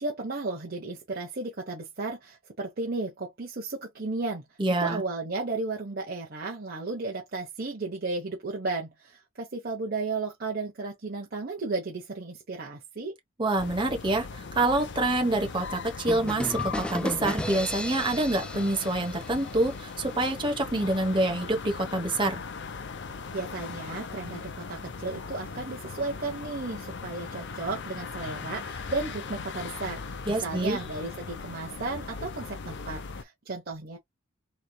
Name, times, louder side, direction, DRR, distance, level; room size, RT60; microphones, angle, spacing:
voice 1, 0.0-4.5 4.8-13.1 23.3-34.0, right 3 dB, 50° right, 1.0 m, -34 dB
voice 2, 4.6-5.0 13.4-14.3 14.5-22.4 30.3-30.8, right 2 dB, 25° right, 1.0 m, -26 dB
sound 1, 13.6-33.2, left 5 dB, 60° left, 0.7 m, -39 dB
sound 2, 16.1-19.8, left 1 dB, 5° left, 0.4 m, -34 dB
4.0 x 3.2 x 2.2 m
head